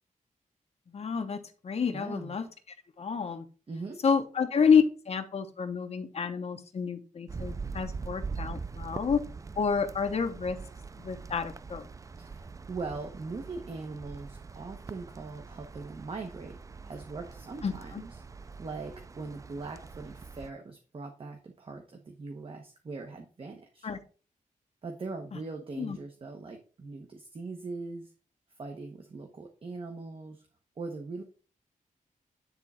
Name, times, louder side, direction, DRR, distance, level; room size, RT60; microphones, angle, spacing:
voice 1, 0.9-2.5 3.0-3.5 4.0-9.2 9.6-10.6 11.0-11.9 17.6-18.0 23.8-24.0 25.3-25.4 25.8-26.0, left 6 dB, 50° left, 7 dB, 1.0 m, -29 dB
voice 2, 1.9-2.3 3.7-4.0 12.2-16.6 16.8-23.9 24.8-28.1 28.6-30.4 30.8-31.2, right 3 dB, 40° right, 4 dB, 1.0 m, -41 dB
sound 1, 7.3-20.5, right 4 dB, 25° right, 0.3 m, -43 dB
9.6 x 3.7 x 4.2 m, 0.37 s
wide cardioid pair, 135°, 14 cm